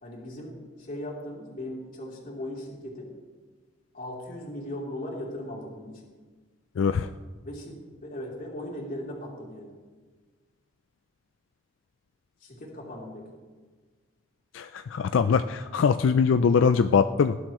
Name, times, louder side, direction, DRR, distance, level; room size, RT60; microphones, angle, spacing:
voice 1, 0.0-3.1 3.9-6.0 7.4-9.7 12.4-13.2, left 1 dB, 45° left, -3 dB, 3.3 m, -38 dB
voice 2, 6.8-7.1 14.5-17.4, left 6 dB, 85° left, 10 dB, 0.4 m, -22 dB
19.0 x 11.0 x 3.1 m, 1.4 s
head